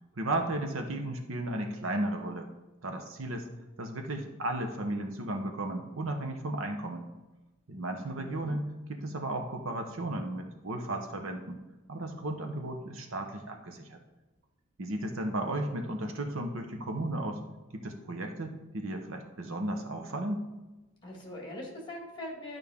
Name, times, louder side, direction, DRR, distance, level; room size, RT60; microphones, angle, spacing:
voice 1, 0.2-2.5 2.8-3.5 3.8-7.0 7.7-11.6 11.9-14.0 14.8-17.4 17.7-20.4, right 1 dB, 65° right, 5 dB, 0.9 m, -34 dB
voice 2, 8.1-8.6 21.0-22.6, left 1 dB, 20° left, -1 dB, 1.9 m, -42 dB
11.0 x 5.3 x 3.6 m, 1.1 s
head